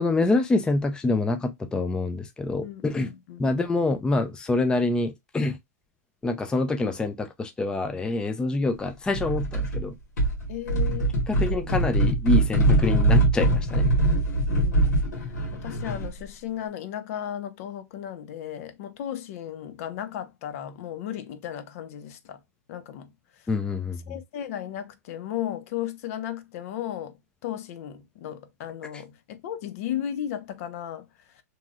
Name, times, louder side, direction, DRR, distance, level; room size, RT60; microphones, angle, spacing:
voice 1, 0.0-3.1 3.4-5.6 6.2-10.0 11.3-13.9 23.5-24.0, left 3 dB, 10° left, 0.4 m, -26 dB
voice 2, 2.6-3.4 10.5-11.1 11.5-11.8 14.5-22.4 22.7-23.5 24.1-31.4, left 10 dB, 60° left, 0.6 m, -35 dB
sound 1, 9.1-9.8 10.2-16.2, right 1 dB, 85° left, 1.4 m, -22 dB
3.1 x 2.7 x 2.3 m
hypercardioid pair, 125°, 9 cm